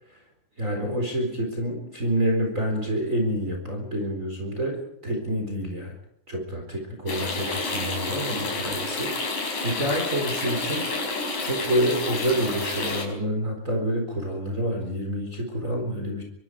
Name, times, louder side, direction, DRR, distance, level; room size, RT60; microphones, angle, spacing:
voice 1, 0.6-5.9 6.3-10.9 11.4-16.2, right 1 dB, 25° right, 2 dB, 4.4 m, -28 dB
sound 1, 7.1-13.0, left 3 dB, 70° left, 7.0 m, -29 dB
26.0 x 24.0 x 5.0 m, 0.72 s
omnidirectional pair, 3.8 m